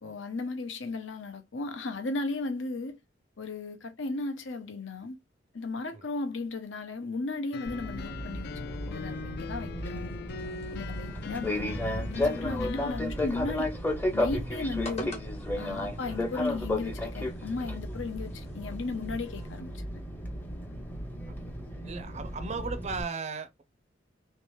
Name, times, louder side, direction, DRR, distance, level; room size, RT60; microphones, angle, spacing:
voice 1, 0.0-3.0 3.4-5.2 5.5-8.5 8.9-10.1 10.7-13.7 14.1-15.1 15.5-20.0, left 3 dB, 75° left, 0.8 m, -35 dB
sound 1, 7.5-13.0, left 5 dB, 55° left, 0.4 m, -41 dB
Fixed-wing aircraft airplane, 7.7-23.0, left 1 dB, 10° left, 0.7 m, -34 dB
sound 2, 10.4-19.6, left 1 dB, 35° left, 1.0 m, -49 dB
voice 2, 21.8-23.6, right 4 dB, 35° right, 0.4 m, -36 dB
3.3 x 2.8 x 3.2 m
head